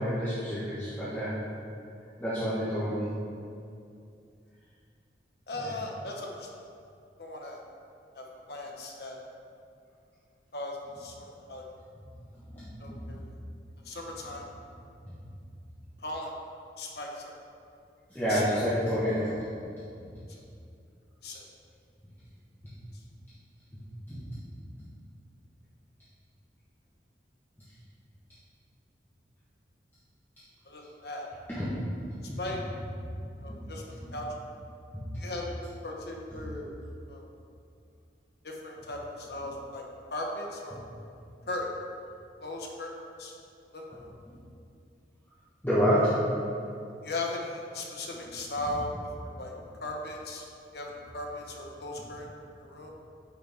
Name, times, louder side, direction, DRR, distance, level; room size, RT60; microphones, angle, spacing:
voice 1, 0.0-1.4 2.2-3.1 5.6-5.7 12.5-13.0 18.1-19.4 20.0-20.1 24.1-24.4 31.5-31.7 32.3-32.4 33.5-33.6 34.0-34.1 45.6-46.2 48.2-48.3 48.6-48.7 52.0-52.1, equal, 10° left, -12 dB, 1.3 m, -29 dB
voice 2, 5.5-6.5 7.2-7.6 8.1-9.2 10.5-11.6 12.8-13.2 13.8-14.5 16.0-16.3 16.8-17.3 18.3-18.9 21.2-21.5 30.7-31.3 32.4-32.6 33.4-34.3 35.2-36.7 37.1-37.2 38.4-39.8 40.1-40.8 41.5-41.7 42.4-43.3 43.7-44.1 47.0-48.9 49.2-49.5 49.8-50.5 50.7-52.3 52.6-52.9, left 2 dB, 60° left, -1 dB, 1.1 m, -38 dB
9.6 x 4.7 x 3.6 m, 2.5 s
head